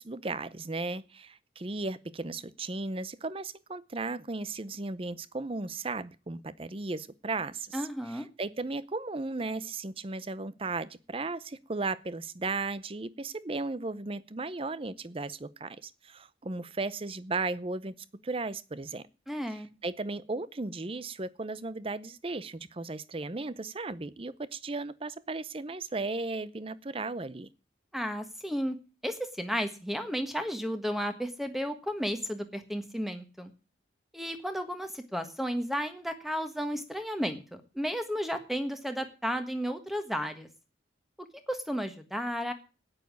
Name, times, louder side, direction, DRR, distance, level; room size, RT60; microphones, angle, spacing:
voice 1, 0.0-7.8 8.1-17.9 18.2-19.1 19.5-27.5, right 3 dB, 30° right, 0.6 m, -35 dB
voice 2, 7.7-8.3 19.3-19.7 27.9-28.8 29.0-33.5 34.1-40.5 41.2-42.5, equal, ahead, 1.4 m, -33 dB
9.5 x 8.7 x 9.5 m
head